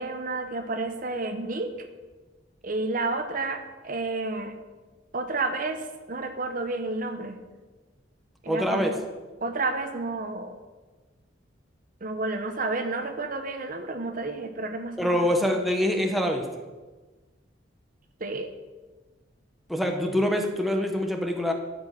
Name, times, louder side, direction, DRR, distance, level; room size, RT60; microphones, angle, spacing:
voice 1, 0.0-1.7 2.6-4.5 5.1-7.4 8.4-9.0 9.4-10.5 12.0-15.3 18.2-18.5, right 3 dB, 45° right, 7 dB, 1.0 m, -31 dB
voice 2, 8.5-8.9 15.0-16.5 19.7-21.5, equal, ahead, 3 dB, 1.1 m, -25 dB
12.5 x 8.1 x 6.5 m, 1.3 s
head